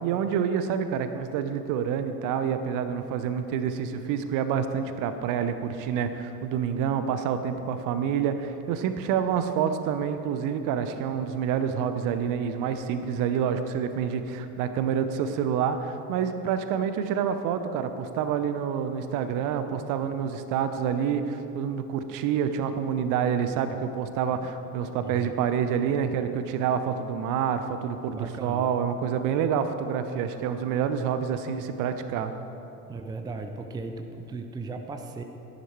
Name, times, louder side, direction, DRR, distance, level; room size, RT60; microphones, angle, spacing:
voice 1, 0.0-32.3, right 8 dB, 45° right, 9 dB, 0.9 m, -28 dB
voice 2, 25.0-25.3 28.2-28.7 32.9-35.2, right 3 dB, 10° right, 6 dB, 0.6 m, -36 dB
13.0 x 11.0 x 4.6 m, 2.9 s
figure-of-eight pair, 70°, 46 cm